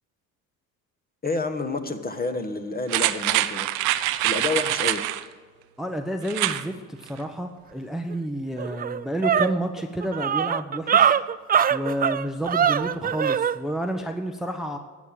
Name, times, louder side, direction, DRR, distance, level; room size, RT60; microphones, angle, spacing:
voice 1, 1.2-3.7 4.2-5.0, left 3 dB, 20° left, 7 dB, 1.4 m, -29 dB
sound 1, 2.9-5.2 6.2-6.6 7.0-7.1, right 15 dB, 75° right, 0.8 m, -24 dB
voice 2, 5.8-11.1 11.7-14.8, equal, ahead, 5 dB, 1.0 m, -30 dB
sound 2, 8.1-8.2 8.6-13.6, right 8 dB, 25° right, 0.4 m, -22 dB
14.0 x 8.4 x 7.6 m, 1.5 s
hypercardioid pair, 70°, 41 cm